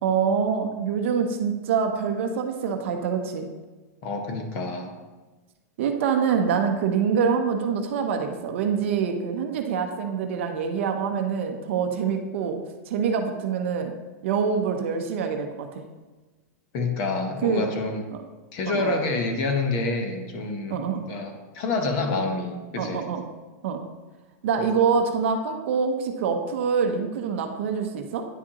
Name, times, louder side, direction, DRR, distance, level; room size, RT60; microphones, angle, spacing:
voice 1, 0.0-3.5 5.8-12.6 12.9-14.0 14.2-15.8 17.4-17.7 18.1-18.2 18.7-18.9 20.7-21.0 22.8-23.3 23.6-23.8 24.4-28.3, right 6 dB, 45° right, 5 dB, 0.7 m, -25 dB
voice 2, 4.0-4.9 16.7-18.0 18.5-20.8 21.1-23.1, left 3 dB, 30° left, 4 dB, 0.7 m, -27 dB
9.7 x 5.0 x 2.9 m, 1.2 s
supercardioid pair, 180°, 9 cm